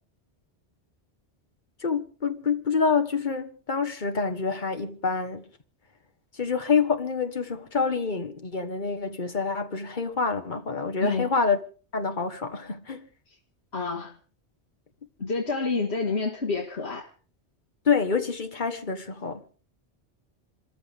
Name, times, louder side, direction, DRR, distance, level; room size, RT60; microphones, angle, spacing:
voice 1, 1.8-5.4 6.4-11.6 11.9-13.1 17.8-19.4, left 5 dB, 45° left, 1.6 m, -27 dB
voice 2, 11.0-11.3 13.7-14.2 15.2-17.1, left 4 dB, 65° left, 2.2 m, -28 dB
27.0 x 14.0 x 3.6 m
omnidirectional pair, 1.1 m